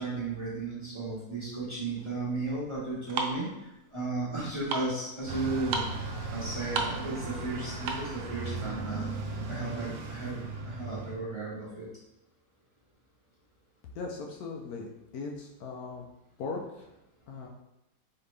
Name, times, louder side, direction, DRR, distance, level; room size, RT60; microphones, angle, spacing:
voice 1, 0.0-5.8 6.3-9.1 9.5-10.4 10.6-11.9, right 3 dB, 20° right, -8 dB, 0.9 m, -34 dB
sound 1, 2.0-8.2, right 4 dB, 85° right, 1.2 m, -36 dB
Bus, 5.3-11.2, right 3 dB, 70° right, 0.7 m, -37 dB
voice 2, 13.9-16.1 16.4-17.0 17.3-17.5, left 4 dB, 70° left, 0 dB, 1.0 m, -39 dB
4.3 x 2.9 x 3.2 m, 0.90 s
omnidirectional pair, 1.7 m